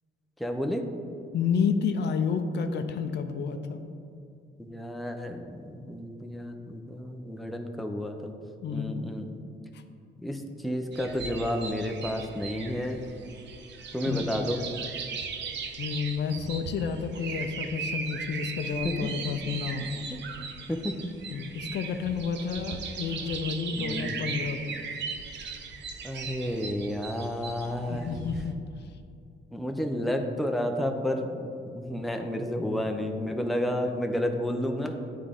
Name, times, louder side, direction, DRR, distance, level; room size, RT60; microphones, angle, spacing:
voice 1, 0.4-0.9 4.6-8.3 8.7-9.2 10.2-13.0 13.9-14.6 18.8-19.1 20.1-20.2 20.7-21.1 23.7-24.2 26.0-28.1 29.5-35.0, equal, ahead, 3 dB, 0.5 m, -31 dB
voice 2, 1.3-3.8 8.6-9.0 9.7-9.8 14.0-14.2 15.8-20.1 21.3-24.8 27.9-28.6, left 6 dB, 60° left, 7 dB, 0.5 m, -30 dB
sound 1, 10.9-28.5, right 5 dB, 65° right, 0.6 m, -38 dB
9.4 x 3.7 x 3.5 m, 2.5 s
cardioid pair, 90°, 20 cm